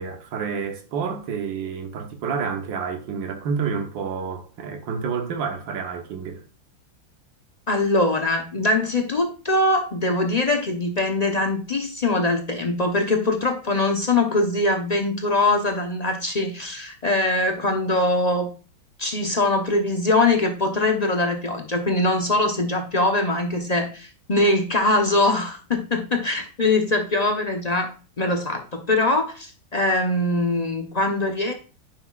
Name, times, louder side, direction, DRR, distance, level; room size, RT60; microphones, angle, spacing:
voice 1, 0.0-6.4, right 6 dB, 70° right, 1.8 m, -29 dB
voice 2, 7.7-18.5 19.0-31.5, left 2 dB, 50° left, 0.4 m, -22 dB
9.8 x 5.8 x 2.4 m
omnidirectional pair, 2.1 m